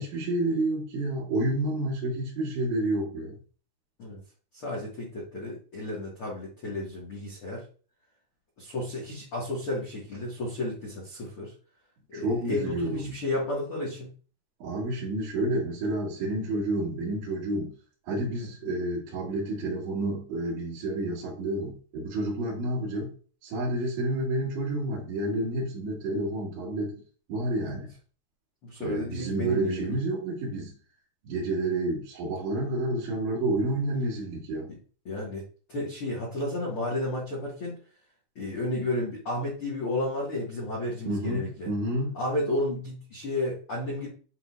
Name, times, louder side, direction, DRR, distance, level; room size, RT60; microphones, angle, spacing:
voice 1, 0.0-3.4 12.1-13.1 14.6-17.7 18.1-23.1 23.4-26.9 27.3-27.9 28.8-30.7 31.3-34.7 41.1-42.2, right 1 dB, 70° right, -8 dB, 3.9 m, -29 dB
voice 2, 4.5-7.6 8.6-11.5 12.1-14.1 22.8-23.0 27.6-27.8 28.6-29.9 34.7-34.8 35.0-35.4 35.7-37.7 38.3-41.7 42.1-44.1, left 1 dB, 60° left, -5 dB, 1.3 m, -32 dB
10.5 x 3.8 x 2.5 m, 0.40 s
omnidirectional pair, 5.5 m